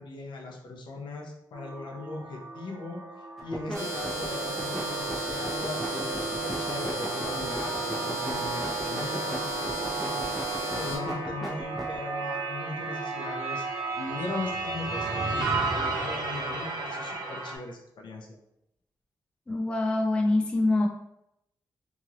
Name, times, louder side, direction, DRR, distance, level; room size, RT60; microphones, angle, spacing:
voice 1, 0.0-3.0 3.4-13.6 14.0-18.4, left 2 dB, 80° left, 1 dB, 0.6 m, -39 dB
sound 1, 1.5-17.6, right 3 dB, 60° right, 0.5 m, -34 dB
sound 2, 3.4-3.8 4.0-12.0, right 1 dB, ahead, 0.8 m, -36 dB
sound 3, 3.7-11.0, right 1 dB, 35° right, 1.1 m, -33 dB
voice 2, 19.5-20.9, left 2 dB, 15° left, 0 dB, 0.3 m, -25 dB
2.9 x 2.8 x 2.5 m, 0.82 s
wide cardioid pair, 175°, 8 cm